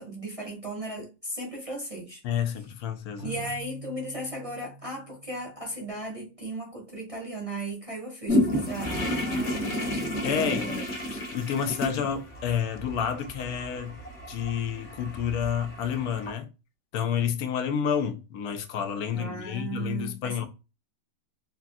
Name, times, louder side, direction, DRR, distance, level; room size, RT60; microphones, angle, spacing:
voice 1, 0.0-2.2 3.2-9.7 10.4-10.8 19.1-20.4, right 2 dB, 30° right, 0.7 m, -36 dB
voice 2, 2.2-3.3 10.2-10.8 11.3-14.0 14.3-16.5 16.9-20.5, left 8 dB, 80° left, 1.1 m, -29 dB
Keyboard (musical), 3.2-6.1, right 2 dB, 60° right, 0.9 m, -45 dB
sound 1, 8.3-16.3, left 1 dB, 40° left, 0.9 m, -31 dB
3.3 x 2.3 x 2.5 m
omnidirectional pair, 1.6 m